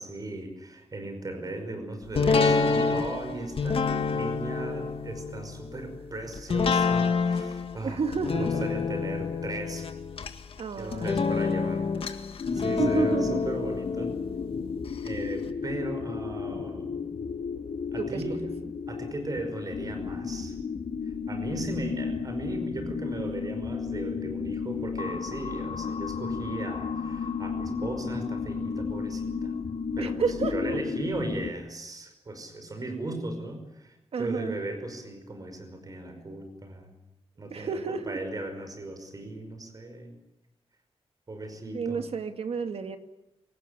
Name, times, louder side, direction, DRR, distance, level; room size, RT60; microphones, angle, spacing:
voice 1, 0.0-8.0 8.3-9.9 10.8-14.2 15.0-17.0 17.9-18.5 18.9-20.6 21.3-29.6 30.0-37.0 37.4-40.1 41.3-42.0, right 2 dB, 35° right, 6 dB, 5.4 m, -37 dB
sound 1, 2.1-15.1 15.5-15.6, left 4 dB, 65° left, 1.8 m, -28 dB
voice 2, 7.8-8.6 10.6-11.3 12.8-13.4 18.0-18.2 30.0-30.8 34.1-34.6 37.5-38.2 41.7-43.0, right 5 dB, 70° right, 7 dB, 2.1 m, -30 dB
sound 2, 12.4-31.5, left 5 dB, 85° left, 2.0 m, -33 dB
26.0 x 18.5 x 10.0 m, 0.92 s
wide cardioid pair, 170°, 11 cm